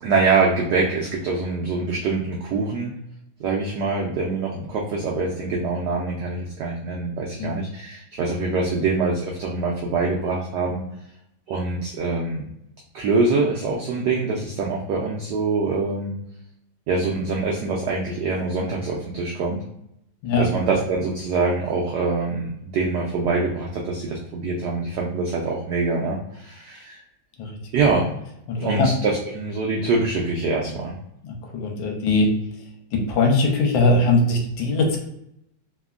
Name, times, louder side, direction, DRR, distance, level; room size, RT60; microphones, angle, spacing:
voice 1, 0.0-2.9 3.4-10.8 11.5-12.4 12.9-16.1 16.9-19.6 20.4-27.0 27.7-28.1 28.6-30.9, right 3 dB, 80° right, -2 dB, 0.9 m, -24 dB
voice 2, 28.5-28.9 31.2-32.3 32.9-35.0, left 2 dB, 75° left, 1 dB, 1.4 m, -20 dB
3.3 x 2.1 x 2.3 m, 0.77 s
omnidirectional pair, 2.3 m